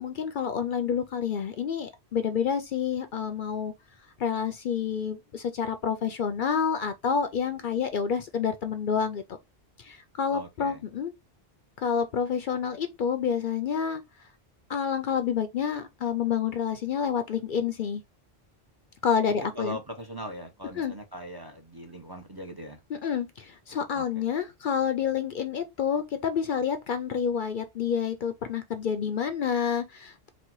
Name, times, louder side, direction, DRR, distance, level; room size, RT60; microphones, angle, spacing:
voice 1, 0.0-3.7 4.2-9.2 9.8-11.1 11.8-14.0 14.7-18.0 19.0-19.8 20.8-20.9 23.0-30.3, left 7 dB, 60° left, 0.6 m, -28 dB
voice 2, 10.3-10.8 19.5-22.8 23.9-24.2, equal, 25° right, 0.6 m, -40 dB
4.2 x 2.2 x 4.5 m
omnidirectional pair, 1.1 m